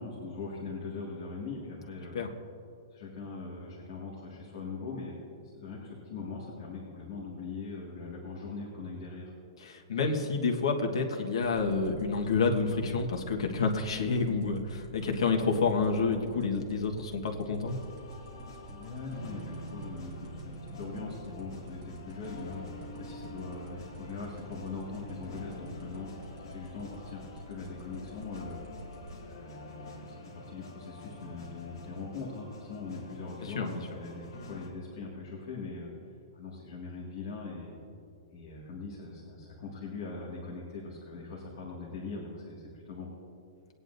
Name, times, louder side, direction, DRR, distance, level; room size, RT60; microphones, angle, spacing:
voice 1, 0.0-2.2 2.9-5.1 5.5-9.3 18.7-28.6 29.2-37.7 38.3-43.1, left 4 dB, 40° left, -5 dB, 2.1 m, -41 dB
voice 2, 9.6-17.8 33.4-33.9, left 4 dB, 85° left, 1 dB, 1.4 m, -29 dB
sound 1, 11.4-29.1, right 2 dB, 30° right, 1.6 m, -47 dB
sound 2, 17.7-34.7, left 1 dB, 55° left, 2.3 m, -47 dB
20.0 x 9.5 x 2.7 m, 2.6 s
hypercardioid pair, 180°, 3 cm